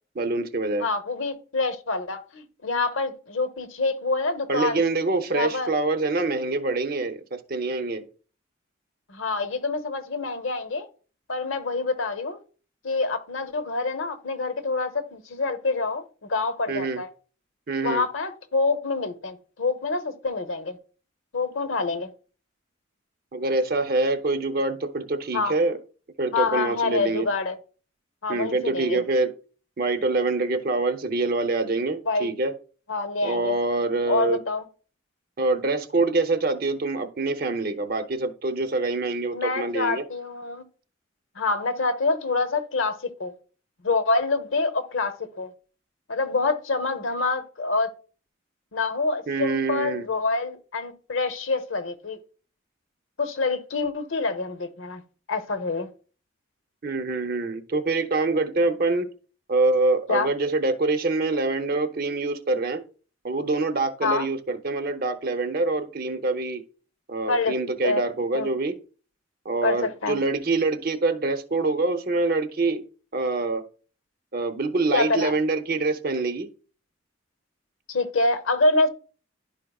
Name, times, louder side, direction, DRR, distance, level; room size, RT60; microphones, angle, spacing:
voice 1, 0.1-0.9 4.5-8.1 16.7-17.0 17.7-18.1 23.3-25.8 26.2-27.3 28.3-29.3 29.8-32.5 33.2-34.4 35.4-40.0 49.3-50.1 56.8-59.1 59.5-62.8 63.2-66.6 67.1-68.7 69.4-72.8 73.1-73.6 74.3-76.5, right 3 dB, 50° right, 0.7 m, -25 dB
voice 2, 0.8-4.8 5.3-5.7 9.1-10.9 11.3-12.4 12.8-16.0 16.3-17.1 17.8-20.8 21.3-22.1 25.3-25.5 26.3-27.6 28.2-29.0 32.1-32.3 32.9-33.6 34.1-34.7 39.3-40.6 41.3-43.3 43.8-45.5 46.1-47.9 48.7-52.2 53.2-55.0 55.3-55.9 60.1-60.3 64.0-64.3 67.3-67.5 67.8-68.0 68.3-68.5 69.6-70.2 74.9-75.3 77.9-78.9, left 3 dB, 85° left, 0.9 m, -26 dB
11.0 x 4.9 x 2.3 m
head